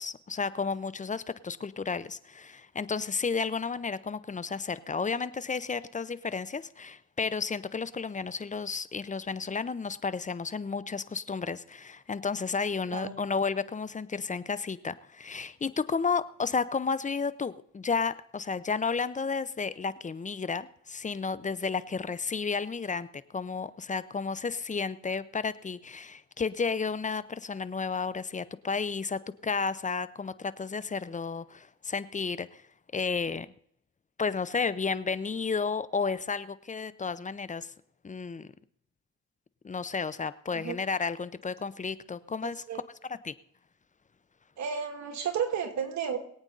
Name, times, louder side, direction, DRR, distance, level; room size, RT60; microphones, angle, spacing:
voice 1, 0.0-32.6 32.9-33.5 34.2-37.7 38.0-38.5 39.6-42.6 43.1-43.3, left 5 dB, 25° left, 16 dB, 0.7 m, -32 dB
voice 2, 42.4-42.8 44.6-46.2, right 7 dB, 65° right, 4 dB, 2.7 m, -32 dB
22.5 x 8.8 x 4.0 m, 0.66 s
cardioid pair, 90°, 30 cm